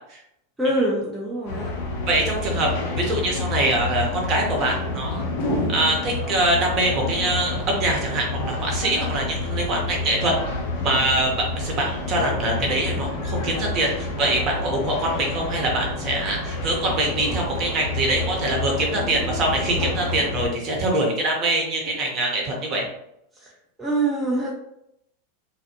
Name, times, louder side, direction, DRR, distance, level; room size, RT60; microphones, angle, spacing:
voice 1, 0.6-1.7 23.3-23.5 23.8-24.5, right 2 dB, 10° right, -5 dB, 0.7 m, -24 dB
sound 1, 1.5-20.5, left 2 dB, 65° left, 0.8 m, -28 dB
voice 2, 2.1-2.7 3.0-5.2 5.7-10.3 10.8-11.3 11.6-22.8, right 1 dB, 40° right, 0 dB, 1.0 m, -24 dB
2.4 x 2.4 x 2.8 m, 0.78 s
hypercardioid pair, 95°, 0 cm